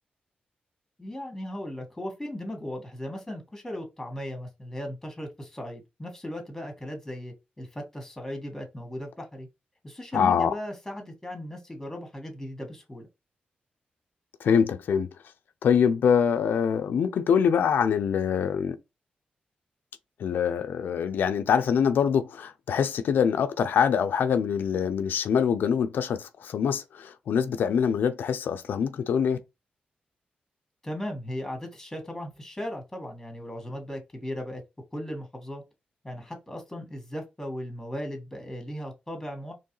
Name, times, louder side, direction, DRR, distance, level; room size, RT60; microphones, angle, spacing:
voice 1, 1.0-9.5 9.8-13.1 30.8-34.6 34.9-35.6 36.0-39.5, equal, 10° left, 1.7 m, -37 dB
voice 2, 10.1-10.5 14.4-15.1 15.6-18.8 20.2-29.4, left 7 dB, 90° left, 0.5 m, -24 dB
4.5 x 3.2 x 3.1 m
wide cardioid pair, 130°, 3 cm